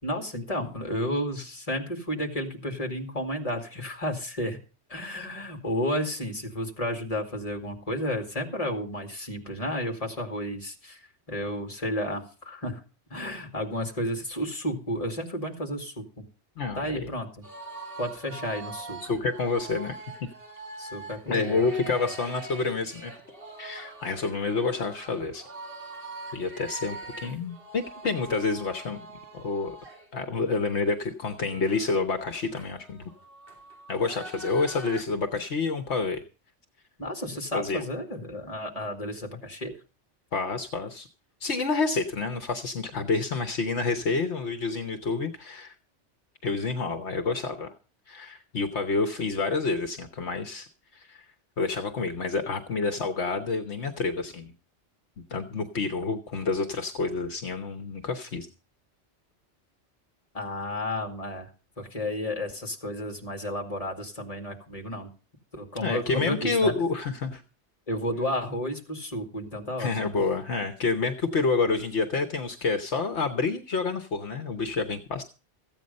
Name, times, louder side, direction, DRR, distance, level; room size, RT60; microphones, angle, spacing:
voice 1, 0.0-4.6 4.9-12.8 13.1-16.2 16.7-17.4 18.0-19.2 20.8-21.7 22.0-22.1 37.0-39.8 60.3-61.5 61.8-65.1 65.5-66.7 67.9-70.1, left 1 dB, 30° left, 4 dB, 2.4 m, -32 dB
voice 2, 16.6-17.1 19.0-20.3 21.3-23.1 23.6-25.5 26.3-29.0 29.3-29.8 30.1-33.1 33.9-36.2 37.5-37.8 40.3-41.1 41.4-45.7 46.4-47.7 48.1-51.3 51.6-54.5 55.2-58.5 65.8-67.4 69.8-75.2, left 4 dB, 70° left, 7 dB, 1.3 m, -28 dB
sound 1, 17.4-30.1 30.4-30.6 30.9-35.0, right 3 dB, 50° right, 3.1 m, -43 dB
14.5 x 9.1 x 5.3 m, 0.35 s
omnidirectional pair, 1.2 m